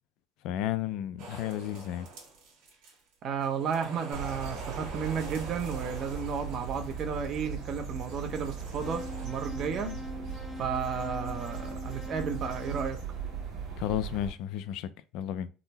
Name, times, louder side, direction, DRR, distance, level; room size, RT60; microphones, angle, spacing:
voice 1, 0.4-2.1 9.8-10.0 13.8-15.5, left 11 dB, 70° left, 0.3 m, -33 dB
sound 1, 1.2-3.1 3.4-7.3 8.0-9.3, right 3 dB, 90° right, 1.4 m, -46 dB
voice 2, 3.2-9.9 10.6-13.0, right 6 dB, 45° right, 0.6 m, -33 dB
sound 2, 4.1-14.3, right 5 dB, 65° right, 1.3 m, -39 dB
sound 3, 8.8-13.9, left 1 dB, 10° left, 0.5 m, -43 dB
3.7 x 2.1 x 2.8 m
cardioid pair, 135°, 0 cm